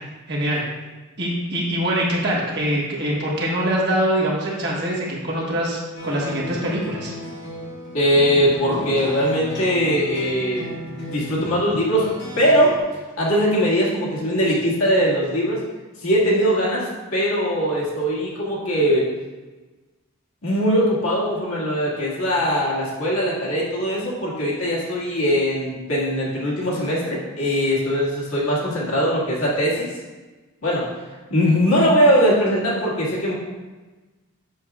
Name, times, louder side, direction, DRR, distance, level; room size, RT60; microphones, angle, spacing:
voice 1, 0.3-0.6 1.2-7.1, equal, 50° right, -4 dB, 1.4 m, -23 dB
sound 1, 5.9-12.8, equal, 50° left, 2.0 m, -34 dB
voice 2, 7.9-12.1 12.4-12.7 13.2-15.6 16.0-16.9 17.1-19.1 20.4-29.9 30.6-30.9 31.3-33.3, equal, 75° left, -6 dB, 1.9 m, -21 dB
7.4 x 6.1 x 2.4 m, 1.2 s
head